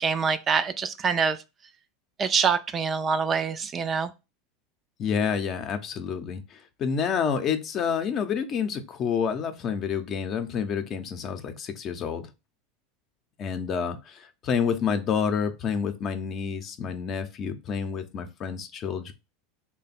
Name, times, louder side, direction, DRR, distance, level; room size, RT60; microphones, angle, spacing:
voice 1, 0.0-1.4 2.2-4.1, right 5 dB, 30° right, 0.4 m, -25 dB
voice 2, 5.0-12.3 13.4-19.1, left 7 dB, 40° left, 0.6 m, -29 dB
3.3 x 2.2 x 4.1 m
hypercardioid pair, 90°, 0 cm